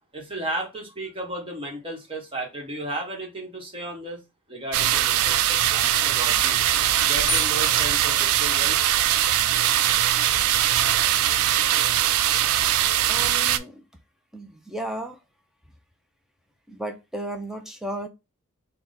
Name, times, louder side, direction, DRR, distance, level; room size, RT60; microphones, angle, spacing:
voice 1, 0.1-4.2 4.5-6.6 7.0-8.8, right 1 dB, 25° right, 1.2 m, -34 dB
sound 1, 4.7-13.6, right 12 dB, 75° right, 0.3 m, -21 dB
sound 2, 7.3-9.1, left 3 dB, 25° left, 0.7 m, -35 dB
voice 2, 13.1-13.8 14.3-15.2 16.7-18.1, right 1 dB, ahead, 0.4 m, -34 dB
3.5 x 2.3 x 4.0 m
head